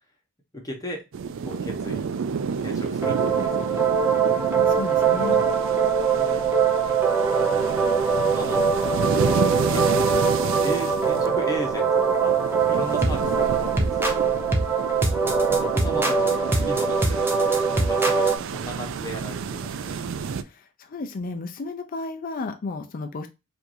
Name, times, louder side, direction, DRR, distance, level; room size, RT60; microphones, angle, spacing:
voice 1, 0.5-1.0 1.4-2.1 2.6-4.5 5.3-5.4 6.1-6.6 7.4-7.8 8.2-8.7 9.2-10.0 10.6-14.4 15.4-20.3, right 1 dB, 15° left, 1 dB, 1.1 m, -36 dB
sound 1, 1.1-20.4, right 5 dB, 60° right, 0.4 m, -31 dB
sound 2, 3.0-18.4, right 5 dB, 10° right, 0.6 m, -22 dB
voice 2, 4.6-5.4 20.3-23.3, left 3 dB, 40° left, 6 dB, 0.4 m, -33 dB
4.6 x 2.6 x 2.6 m, 0.25 s
head